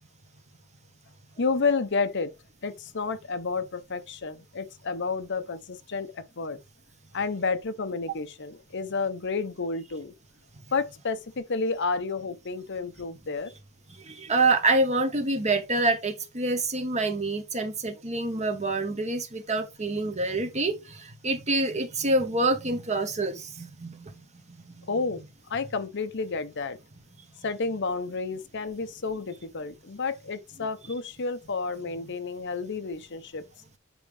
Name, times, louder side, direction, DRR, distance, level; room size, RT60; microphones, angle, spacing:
voice 1, 1.4-2.3 2.6-6.6 7.1-10.1 10.7-13.5 24.9-25.2 25.5-26.8 27.4-33.4, left 4 dB, 55° left, 0.8 m, -30 dB
voice 2, 14.0-24.1, right 2 dB, 30° right, 1.3 m, -26 dB
9.0 x 5.0 x 3.4 m
head